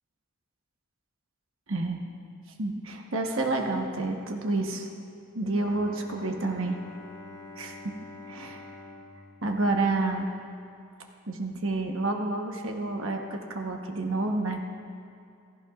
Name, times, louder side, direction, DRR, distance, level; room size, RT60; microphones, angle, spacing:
voice 1, 1.7-2.0 2.6-4.9 5.3-6.8 7.6-7.9 8.3-8.6 9.4-10.3 11.3-14.6, right 2 dB, 65° right, 2 dB, 1.1 m, -29 dB
Bowed string instrument, 5.5-10.5, left 2 dB, 20° left, 1.8 m, -47 dB
16.0 x 14.5 x 2.4 m, 2.6 s
head